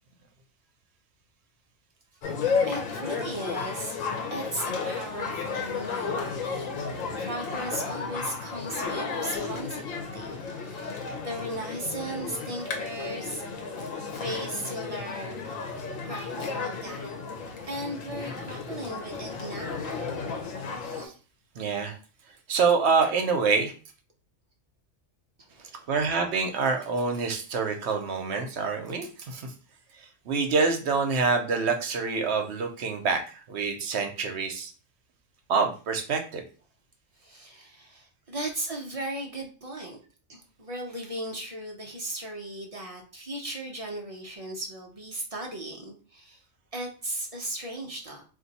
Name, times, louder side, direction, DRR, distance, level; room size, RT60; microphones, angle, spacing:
sound 1, 2.2-21.1, left 5 dB, 85° left, 1.1 m, -33 dB
voice 1, 2.7-4.0 4.3-13.4 14.1-15.4 16.0-17.1 17.6-19.9 25.4-25.9 37.2-40.0 40.3-46.4 46.7-48.2, right 1 dB, 45° right, 1 dB, 0.5 m, -37 dB
voice 2, 21.6-22.0 22.5-23.7 25.9-29.5 30.3-34.7 35.5-36.4, right 4 dB, 65° right, 4 dB, 0.8 m, -26 dB
2.6 x 2.5 x 4.0 m, 0.37 s
omnidirectional pair, 1.3 m